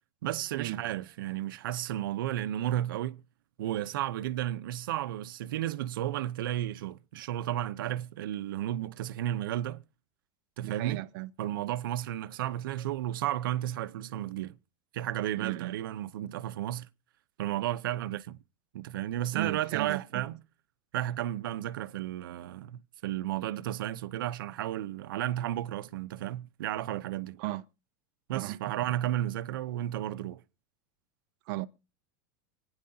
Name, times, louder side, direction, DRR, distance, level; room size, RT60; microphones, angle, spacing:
voice 1, 0.2-3.2 3.6-9.8 10.6-11.0 11.4-14.6 14.9-16.9 17.4-18.4 18.7-20.4 20.9-27.4 28.3-30.4, right 13 dB, 85° right, 0.8 m, -33 dB
voice 2, 10.6-11.3 15.4-15.8 19.3-20.2 27.4-27.6 28.3-28.6 31.5-31.7, right 16 dB, 50° right, 0.7 m, -35 dB
26.0 x 9.8 x 2.8 m
supercardioid pair, 155°, 11 cm